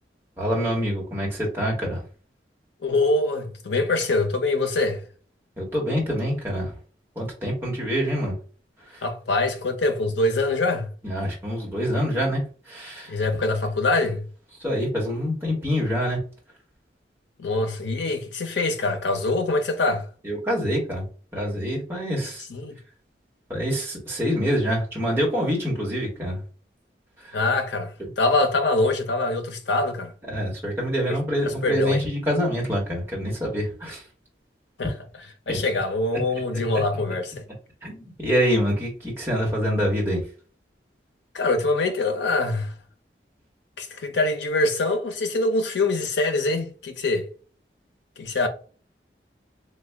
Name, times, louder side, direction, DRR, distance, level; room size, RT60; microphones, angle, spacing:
voice 1, 0.4-2.0 5.6-6.7 7.1-8.3 8.9-9.0 11.0-13.1 14.6-16.2 20.2-21.0 21.3-22.5 23.5-26.4 27.2-27.4 30.3-34.0 35.5-35.6 37.8-40.2, equal, 15° right, 1.2 m, -26 dB
voice 2, 2.8-5.0 9.0-10.9 13.1-14.3 17.4-20.1 22.5-22.8 27.3-30.1 31.4-32.0 34.8-34.9 35.5-37.4 41.3-42.7 43.8-47.3 48.2-48.5, left 2 dB, 90° left, 0.7 m, -24 dB
3.3 x 2.2 x 3.4 m
head